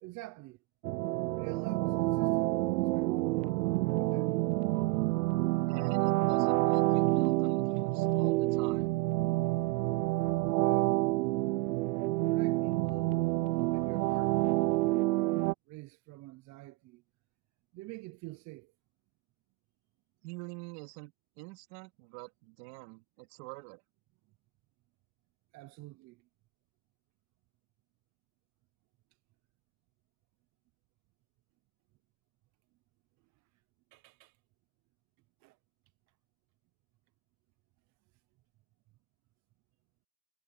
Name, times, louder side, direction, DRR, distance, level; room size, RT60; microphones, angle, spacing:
voice 1, 0.0-0.6 1.3-4.4 10.5-11.0 12.2-13.3 13.5-15.2 15.7-17.0 17.7-18.7 25.5-26.3 33.9-34.4 35.4-35.6, right 21 dB, 35° right, 0.8 m, -47 dB
sound 1, 0.8-15.5, right 21 dB, 70° right, 0.6 m, -28 dB
voice 2, 5.7-8.9 20.2-23.8, right 25 dB, 55° right, 2.9 m, -47 dB
supercardioid pair, 120°, 47 cm